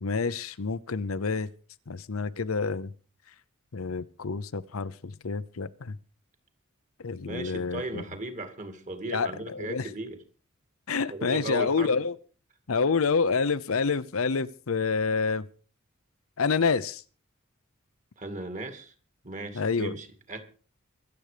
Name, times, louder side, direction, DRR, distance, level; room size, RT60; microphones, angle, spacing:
voice 1, 0.0-1.5 1.9-2.9 3.7-6.0 7.0-8.0 9.1-9.9 10.9-12.2 12.7-15.4 16.4-17.0 19.5-20.0, left 5 dB, 70° left, 0.7 m, -28 dB
voice 2, 7.3-10.2 11.1-11.9 18.2-18.9 19.2-20.4, right 2 dB, 35° right, 2.4 m, -37 dB
24.0 x 8.0 x 5.1 m
head